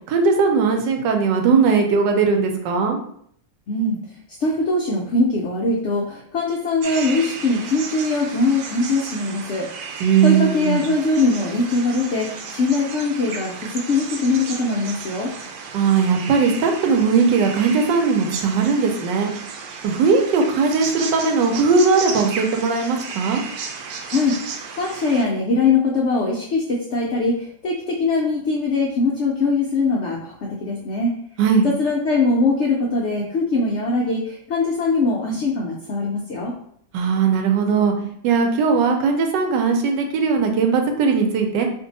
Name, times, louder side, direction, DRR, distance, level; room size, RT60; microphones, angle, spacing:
voice 1, 0.1-3.0 10.0-10.8 15.7-19.3 19.8-23.4 31.4-31.7 36.9-37.9 38.2-41.7, right 5 dB, 85° right, 4 dB, 1.2 m, -18 dB
voice 2, 3.7-4.0 4.3-15.3 24.1-31.1 31.6-36.5, left 3 dB, 90° left, -2 dB, 0.6 m, -22 dB
sound 1, 6.8-25.2, right 5 dB, 70° right, 0.9 m, -34 dB
2.7 x 2.6 x 3.8 m, 0.66 s
omnidirectional pair, 1.8 m